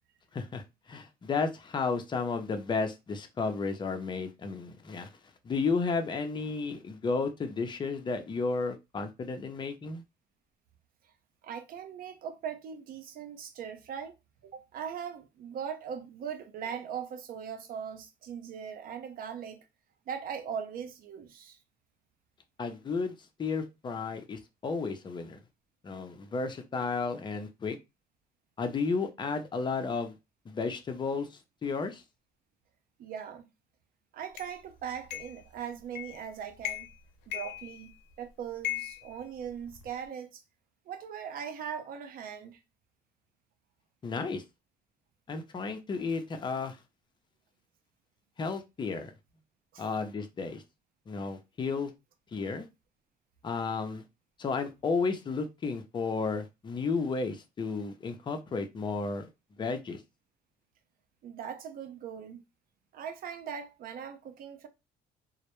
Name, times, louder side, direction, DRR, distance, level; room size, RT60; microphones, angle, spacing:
voice 1, 0.3-5.1 5.4-10.0 22.6-25.4 25.8-27.8 28.6-30.1 30.5-32.0 44.0-44.4 45.3-46.8 48.4-49.1 49.8-50.6 51.1-51.9 52.3-52.7 53.4-54.0 54.4-59.3 59.6-60.0, left 4 dB, 25° left, 0.5 m, -33 dB
voice 2, 11.4-14.1 14.4-19.6 20.1-21.6 33.0-33.5 34.1-36.9 37.3-40.4 40.9-42.6 49.7-49.8 61.2-62.4 62.9-64.7, right 8 dB, 60° right, 0.5 m, -40 dB
sound 1, 34.4-34.5 35.1-35.4 36.0-36.3 36.6-37.0 37.3-38.1 38.6-39.9, left 13 dB, 90° left, 0.5 m, -38 dB
2.1 x 2.0 x 2.9 m
cardioid pair, 110°, 17 cm